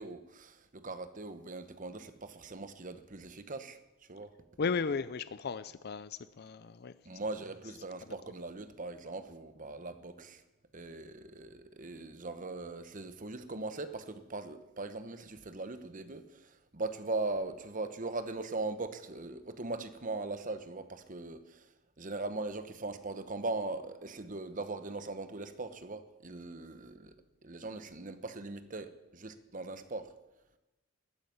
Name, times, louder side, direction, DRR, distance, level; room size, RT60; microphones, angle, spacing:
voice 1, 0.0-3.8 4.1-4.3 4.9-5.0 7.0-10.4 10.7-21.7 22.0-27.1 27.4-30.1, right 3 dB, 40° right, 1.1 m, -40 dB
voice 2, 4.6-6.9, left 5 dB, 50° left, 0.5 m, -35 dB
14.5 x 9.7 x 9.5 m
head